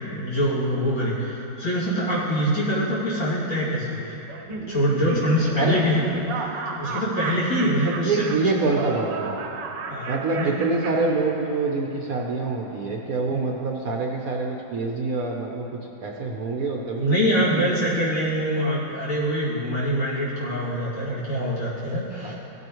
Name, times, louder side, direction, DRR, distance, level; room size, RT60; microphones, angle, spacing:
voice 1, 0.1-4.1 4.7-8.5 9.9-10.5 13.3-13.5 17.0-22.3, equal, 75° left, -9 dB, 3.2 m, -24 dB
Laughter, 4.3-11.8, right 4 dB, 75° right, 1.4 m, -34 dB
voice 2, 8.0-9.4 10.1-17.9 22.2-22.3, right 3 dB, 60° right, 0 dB, 1.1 m, -26 dB
16.5 x 8.1 x 3.1 m, 3.0 s
omnidirectional pair, 2.1 m